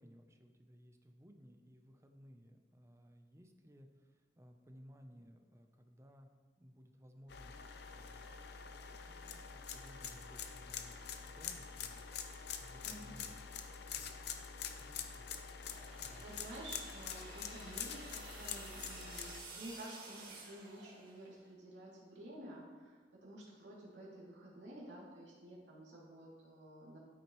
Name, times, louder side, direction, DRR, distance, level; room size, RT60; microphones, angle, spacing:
voice 1, 0.0-6.3 6.6-8.4 8.8-13.4 13.9-15.3 15.8-16.4, equal, 15° right, 5 dB, 0.7 m, -60 dB
sound 1, 7.3-19.4, left 7 dB, 65° left, 0.6 m, -46 dB
voice 2, 12.8-13.1 15.9-27.0, right 1 dB, 85° right, -6 dB, 2.8 m, -52 dB
sound 2, 15.5-21.4, right 3 dB, 55° right, 2.2 m, -53 dB
13.0 x 6.3 x 3.1 m, 1.5 s
head